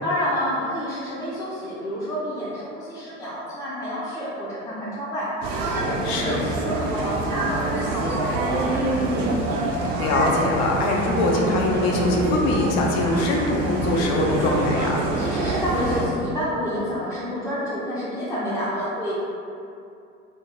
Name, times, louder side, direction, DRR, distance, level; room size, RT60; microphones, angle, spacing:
voice 1, 0.0-5.3 5.6-9.2 15.2-19.1, equal, 10° left, -8 dB, 0.5 m, -29 dB
sound 1, 5.4-16.0, right 2 dB, 55° right, 0.5 m, -26 dB
voice 2, 6.0-6.4 9.0-9.2 10.0-15.0, left 2 dB, 55° left, -1 dB, 0.6 m, -22 dB
2.4 x 2.2 x 3.0 m, 2.5 s
figure-of-eight pair, 70°, 39 cm